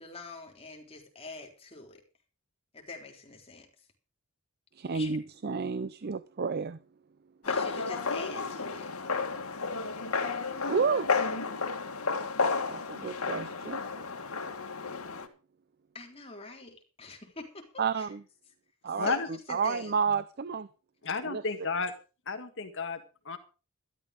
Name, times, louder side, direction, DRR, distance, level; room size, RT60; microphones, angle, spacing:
voice 1, 0.0-2.0 2.7-3.7 4.8-5.1 7.4-8.9 15.9-18.1 19.0-20.0, left 3 dB, 25° left, 3.7 m, -45 dB
voice 2, 4.7-6.8 10.7-11.1 12.7-13.8 17.8-18.2 18.8-19.1 19.5-20.7 21.3-21.4, right 5 dB, 45° right, 0.6 m, -30 dB
sound 1, 7.4-15.3, left 4 dB, 80° left, 2.1 m, -32 dB
voice 3, 19.0-19.3 21.1-21.9 22.3-23.4, left 4 dB, 60° left, 1.7 m, -32 dB
13.0 x 12.5 x 5.0 m
head